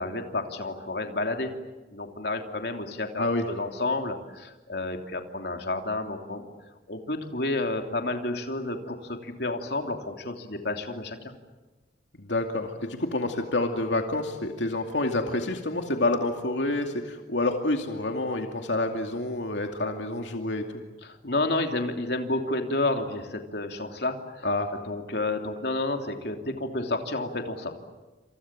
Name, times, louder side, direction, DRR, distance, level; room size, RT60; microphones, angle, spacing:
voice 1, 0.0-1.5 1.9-6.5 6.9-11.3 21.0-24.5 24.8-27.7, left 2 dB, 60° left, 4 dB, 3.1 m, -30 dB
voice 2, 12.2-20.8 24.4-24.7, left 2 dB, 80° left, 4 dB, 2.4 m, -28 dB
29.0 x 27.5 x 7.5 m, 1.2 s
head